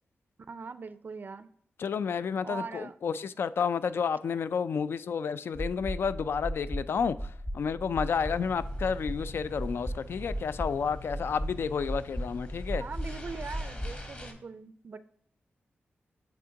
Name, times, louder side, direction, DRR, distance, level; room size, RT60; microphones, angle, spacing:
voice 1, 0.5-1.5 2.4-2.9 12.7-15.0, right 4 dB, 50° right, 0.4 m, -41 dB
voice 2, 1.8-7.2 7.5-12.8, left 6 dB, 70° left, 0.3 m, -30 dB
sound 1, 5.5-14.0, equal, 10° left, 0.6 m, -37 dB
sound 2, 8.0-14.3, left 1 dB, 35° left, 1.3 m, -45 dB
8.5 x 3.5 x 3.7 m
wide cardioid pair, 85°, 4 cm